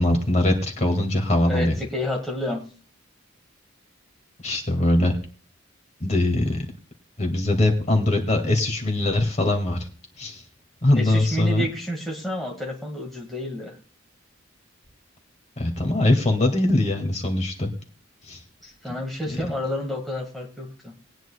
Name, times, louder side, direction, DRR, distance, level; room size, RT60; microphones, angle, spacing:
voice 1, 0.0-1.7 4.4-5.2 6.0-6.6 7.2-9.9 10.2-10.4 10.8-11.6 15.6-17.7 18.3-18.4 19.3-19.4, left 1 dB, 35° left, 3 dB, 2.0 m, -22 dB
voice 2, 1.5-2.6 11.0-13.8 18.6-20.9, equal, ahead, -2 dB, 1.7 m, -30 dB
21.5 x 9.2 x 2.2 m, 0.41 s
head